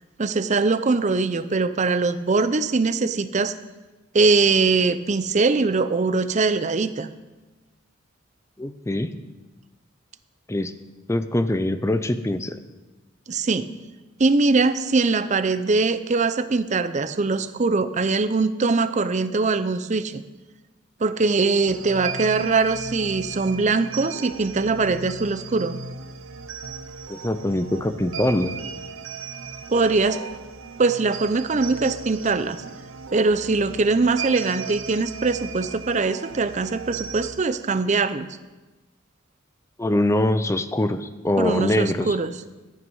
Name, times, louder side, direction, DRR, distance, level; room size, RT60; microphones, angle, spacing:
voice 1, 0.2-3.5 4.1-7.1 13.3-13.7 14.2-20.2 21.0-25.8 29.7-30.2 30.8-32.6 33.1-38.3 41.4-42.3, right 3 dB, 35° right, 13 dB, 0.5 m, -22 dB
voice 2, 8.6-9.1 10.5-10.7 11.1-12.6 27.1-28.5 39.8-42.2, left 1 dB, 15° left, 11 dB, 0.5 m, -23 dB
sound 1, 21.7-37.3, right 5 dB, 80° right, 0.8 m, -36 dB
14.0 x 9.4 x 5.4 m, 1.2 s
head